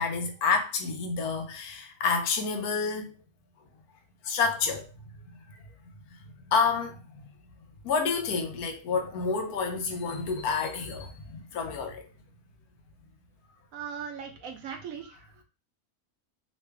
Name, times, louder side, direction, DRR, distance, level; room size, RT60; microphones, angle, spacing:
voice 1, 0.0-3.1 4.2-4.9 5.5-5.6 6.5-7.2 7.8-12.1, left 5 dB, 80° left, 1.2 m, -29 dB
voice 2, 13.7-15.2, right 7 dB, 70° right, 1.0 m, -39 dB
3.1 x 2.6 x 3.3 m
omnidirectional pair, 1.6 m